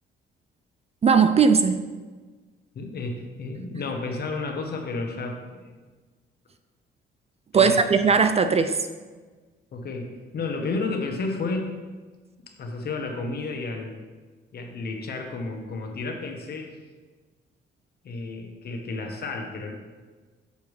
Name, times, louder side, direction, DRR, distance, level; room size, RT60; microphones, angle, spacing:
voice 1, 1.0-1.9 7.5-8.8, right 5 dB, 30° right, 10 dB, 0.4 m, -19 dB
voice 2, 2.7-5.8 7.5-8.1 9.7-11.7 12.6-14.0 14.5-16.8 18.0-19.7, left 3 dB, 55° left, 3 dB, 1.1 m, -32 dB
6.9 x 5.9 x 3.2 m, 1.4 s
cardioid pair, 90°, 20 cm